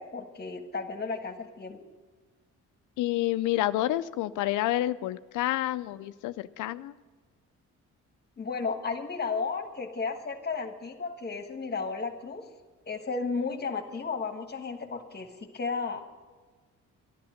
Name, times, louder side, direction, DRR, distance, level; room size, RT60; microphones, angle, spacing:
voice 1, 0.0-1.8 8.4-12.5 12.9-16.2, left 4 dB, 35° left, 6 dB, 1.4 m, -34 dB
voice 2, 3.0-6.9, left 15 dB, 85° left, 13 dB, 0.5 m, -29 dB
12.0 x 11.5 x 6.5 m, 1.4 s
cardioid pair, 90°, 30 cm